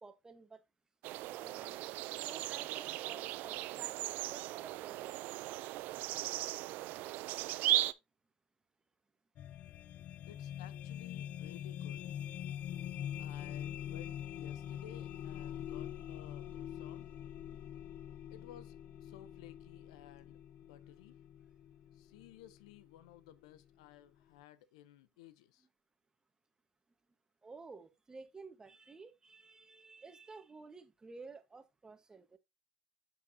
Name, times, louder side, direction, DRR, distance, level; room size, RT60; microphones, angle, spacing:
voice 1, 0.0-0.6 1.3-1.8 2.1-3.9 4.3-5.1 27.4-32.4, right 4 dB, 20° right, 1.4 m, -53 dB
sound 1, 1.0-7.9, right 16 dB, 65° right, 0.5 m, -37 dB
sound 2, 9.4-23.4, left 10 dB, 55° left, 0.4 m, -44 dB
voice 2, 10.3-12.1 13.2-17.1 18.3-21.2 21.9-25.7, left 12 dB, 85° left, 0.7 m, -56 dB
7.6 x 6.9 x 2.8 m
supercardioid pair, 85°, 3 cm